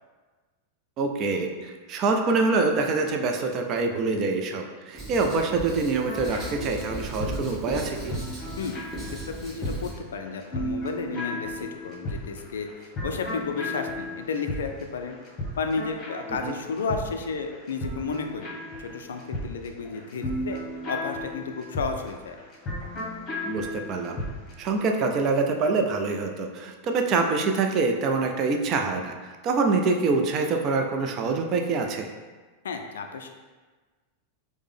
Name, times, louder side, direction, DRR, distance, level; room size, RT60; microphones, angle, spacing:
voice 1, 1.0-8.2 16.4-16.5 23.4-24.2 24.6-32.1, right 3 dB, 35° right, 4 dB, 0.4 m, -25 dB
Writing, 4.9-9.9, right 1 dB, 15° right, 1.1 m, -37 dB
sound 1, 6.0-24.6, left 1 dB, 25° left, 1.0 m, -35 dB
voice 2, 9.1-12.7 13.0-15.2 15.6-20.6 20.9-22.4 32.6-33.3, left 4 dB, 65° left, 5 dB, 0.3 m, -32 dB
4.8 x 2.1 x 3.3 m, 1.3 s
figure-of-eight pair, 90°, 0 cm